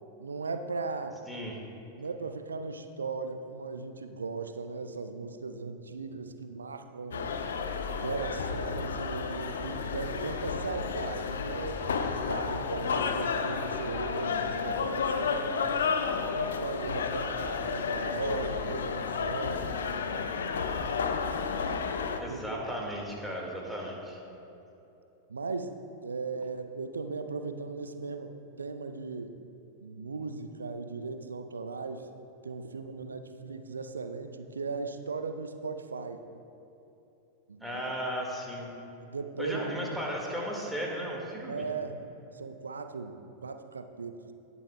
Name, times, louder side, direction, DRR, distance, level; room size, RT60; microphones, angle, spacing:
voice 1, 0.2-1.2 2.0-7.3 8.0-11.9 12.2-15.7 16.3-19.7 22.3-22.6 25.3-25.7 26.0-29.3 29.8-32.1 32.4-36.2 37.5-37.8 39.0-39.9 41.5-42.1 42.3-44.2, right 4 dB, 75° right, 8 dB, 0.5 m, -37 dB
voice 2, 1.3-1.6 22.2-24.2 37.6-38.7 39.4-41.6, equal, ahead, -2 dB, 1.8 m, -35 dB
sound 1, 7.1-22.2, left 5 dB, 65° left, 0.5 m, -32 dB
18.5 x 6.9 x 2.3 m, 2.9 s
figure-of-eight pair, 90°, 0 cm